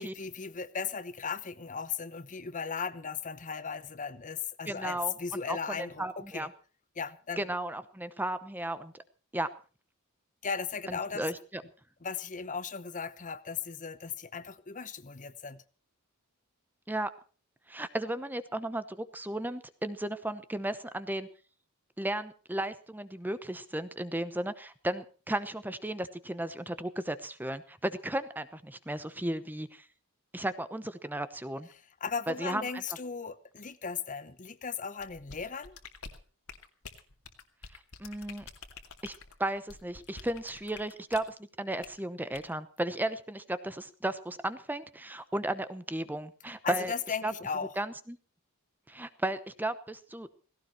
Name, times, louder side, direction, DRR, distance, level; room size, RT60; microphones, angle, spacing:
voice 1, 0.0-6.5 7.0-7.4 10.4-11.2 12.0-15.6 32.0-35.8 46.6-47.7, left 6 dB, 35° left, 0.9 m, -37 dB
voice 2, 4.7-6.5 7.4-9.0 9.3-9.5 10.9-11.6 16.9-17.1 17.7-21.3 22.0-29.8 30.3-31.7 32.3-32.8 38.0-38.4 39.0-39.1 39.4-46.9 47.2-47.3 47.8-48.2 48.9-50.3, right 1 dB, 10° right, 0.9 m, -35 dB
sound 1, 35.0-41.3 41.8-42.0 42.3-42.5, left 5 dB, 70° left, 2.4 m, -48 dB
17.5 x 17.0 x 4.3 m
head